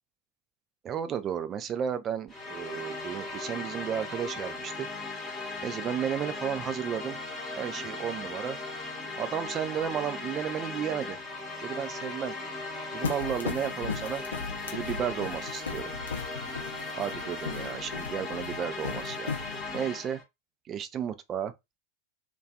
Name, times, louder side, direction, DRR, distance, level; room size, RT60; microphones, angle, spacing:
voice 1, 0.8-4.9 5.6-7.2 7.6-8.6 9.2-11.2 11.6-12.3 12.9-14.2 14.7-15.9 16.9-19.3 19.7-20.2 20.7-21.5, right 9 dB, 30° right, 0.3 m, -33 dB
sound 1, 2.3-20.2, left 3 dB, 10° left, 0.9 m, -38 dB
sound 2, 13.0-19.8, left 5 dB, 70° left, 0.5 m, -37 dB
2.4 x 2.3 x 2.2 m
figure-of-eight pair, 90°, 0 cm